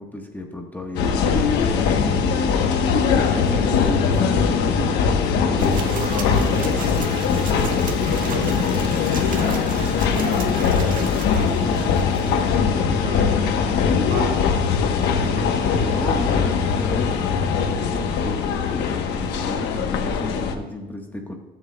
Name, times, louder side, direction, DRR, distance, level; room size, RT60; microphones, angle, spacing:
voice 1, 0.0-2.6 3.4-6.7 15.8-21.3, left 1 dB, 10° left, 2 dB, 1.3 m, -33 dB
sound 1, 0.9-20.5, left 6 dB, 85° left, 1.1 m, -21 dB
voice 2, 2.9-3.4 5.4-7.0 7.5-12.4 12.8-14.7 15.1-16.1, right 1 dB, 70° right, 0 dB, 3.4 m, -34 dB
sound 2, 5.6-12.6, right 5 dB, 55° right, 1.6 m, -36 dB
21.0 x 7.8 x 2.3 m, 1.1 s
cardioid pair, 110°, 17 cm